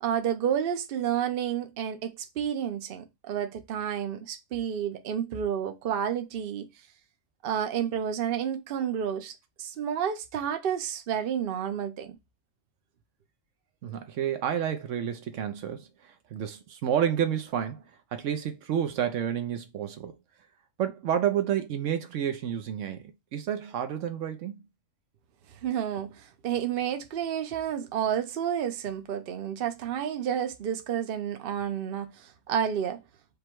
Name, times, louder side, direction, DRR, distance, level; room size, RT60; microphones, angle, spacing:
voice 1, 0.0-6.7 7.4-9.3 9.6-12.2 25.5-33.0, right 9 dB, 55° right, 0.8 m, -30 dB
voice 2, 13.8-17.8 18.1-20.1 20.8-24.6, right 9 dB, 75° right, 0.9 m, -30 dB
5.1 x 2.2 x 4.5 m
omnidirectional pair, 1.3 m